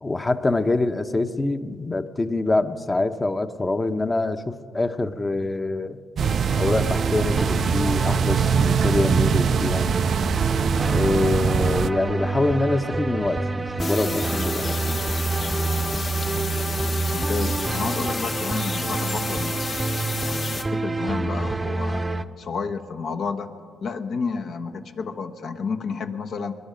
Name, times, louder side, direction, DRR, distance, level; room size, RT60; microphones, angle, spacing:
voice 1, 0.0-6.0 6.5-9.9 10.8-15.0, left 2 dB, 25° left, 10 dB, 0.9 m, -25 dB
sound 1, 6.2-22.2, right 3 dB, 25° right, 0.7 m, -27 dB
sound 2, 6.2-11.9, right 8 dB, 65° right, 0.3 m, -23 dB
sound 3, 13.8-20.6, left 4 dB, 50° left, 1.3 m, -31 dB
voice 2, 17.1-19.7 20.2-22.0 22.4-23.5 23.8-26.5, left 5 dB, 65° left, 7 dB, 1.0 m, -31 dB
21.0 x 11.0 x 5.1 m, 2.1 s
supercardioid pair, 65°, 0 cm